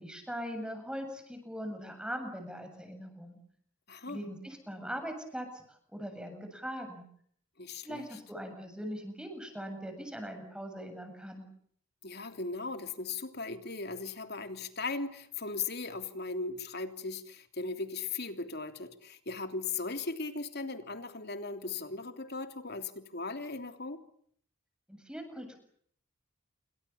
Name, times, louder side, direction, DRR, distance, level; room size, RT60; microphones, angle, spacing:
voice 1, 0.0-3.4 4.1-5.6 5.9-7.0 7.8-11.5 24.9-25.6, equal, 5° right, 6 dB, 7.7 m, -41 dB
voice 2, 3.9-4.3 7.6-8.1 12.0-24.0, left 3 dB, 50° left, 8 dB, 3.1 m, -38 dB
28.5 x 25.5 x 7.1 m, 0.65 s
head